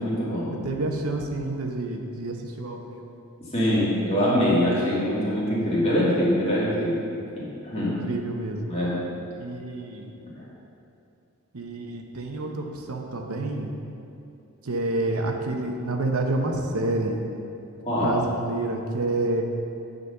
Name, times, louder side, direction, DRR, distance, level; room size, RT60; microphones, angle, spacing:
voice 1, 0.0-0.6 3.5-8.0 8.7-9.0 17.9-18.2, equal, 30° left, -8 dB, 2.1 m, -24 dB
voice 2, 0.6-3.1 7.8-8.7 9.4-10.1 11.5-13.7 14.6-17.2 18.0-19.4, right 2 dB, 85° right, 2 dB, 0.9 m, -28 dB
9.6 x 4.1 x 6.6 m, 2.6 s
head